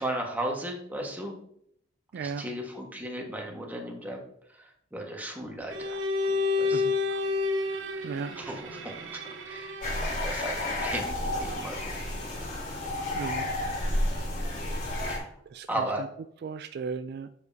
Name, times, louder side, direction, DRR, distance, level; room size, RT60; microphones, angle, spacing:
voice 1, 0.0-1.3 2.2-4.2 4.9-6.0 6.3-7.2 7.9-8.9 9.5-9.8 10.1-11.9 15.0-15.3 15.7-16.0, right 1 dB, 10° right, 0 dB, 1.5 m, -36 dB
voice 2, 2.1-2.5 6.7-6.9 8.0-8.3 13.1-13.5 15.5-15.7 16.4-17.3, right 5 dB, 55° right, 11 dB, 0.3 m, -35 dB
Bowed string instrument, 5.7-10.2, left 3 dB, 75° right, 1.1 m, -30 dB
sound 1, 9.8-15.2, left 1 dB, 50° left, 2.6 m, -31 dB
7.9 x 7.1 x 2.7 m, 0.68 s
head